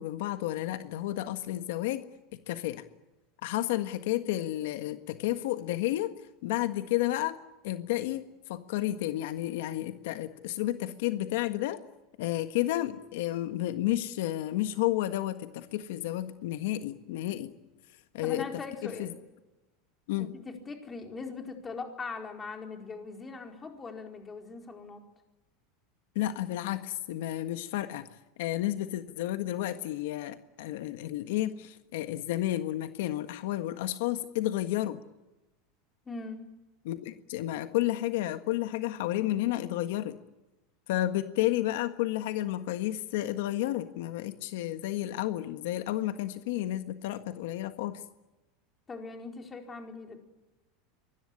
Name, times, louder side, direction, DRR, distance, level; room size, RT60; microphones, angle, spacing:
voice 1, 0.0-2.1 2.3-2.8 3.4-6.1 6.4-7.4 7.6-11.8 12.2-17.5 18.1-18.5 18.8-19.1 20.1-20.3 26.1-28.1 28.4-35.0 36.8-40.2 40.9-48.0, left 14 dB, 75° left, 9 dB, 1.6 m, -31 dB
voice 2, 18.2-19.2 20.2-25.0 36.1-36.5 48.9-50.2, left 4 dB, 15° left, 4 dB, 4.4 m, -41 dB
25.0 x 20.5 x 10.0 m, 1.1 s
supercardioid pair, 150°, 0 cm